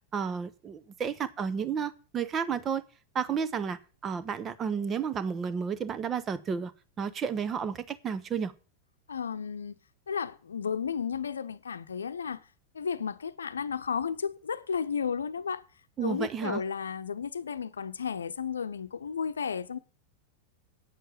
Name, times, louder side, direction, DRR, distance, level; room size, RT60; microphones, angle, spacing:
voice 1, 0.1-2.8 3.1-6.7 7.0-8.5 16.0-16.6, right 6 dB, 25° right, 1.0 m, -32 dB
voice 2, 9.1-9.8 10.1-12.4 12.7-15.6 16.0-19.8, left 6 dB, 70° left, 0.8 m, -33 dB
8.5 x 7.7 x 6.6 m
figure-of-eight pair, 90°, 0 cm